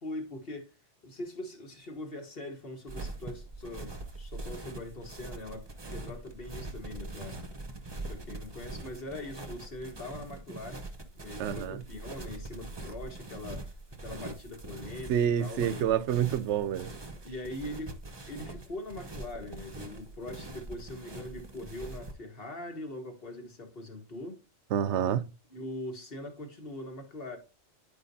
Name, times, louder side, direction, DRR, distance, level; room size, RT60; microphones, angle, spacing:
voice 1, 0.0-0.7 1.0-7.4 8.1-10.9 11.1-13.7 14.0-16.0 17.1-17.9 18.3-24.4 25.5-27.4, left 1 dB, 55° left, 1.7 m, -42 dB
sound 1, 2.9-22.1, right 2 dB, 25° right, 0.8 m, -43 dB
voice 2, 11.4-11.8 15.1-16.9 24.7-25.3, right 9 dB, 80° right, 0.9 m, -28 dB
10.5 x 4.7 x 2.7 m
omnidirectional pair, 1.2 m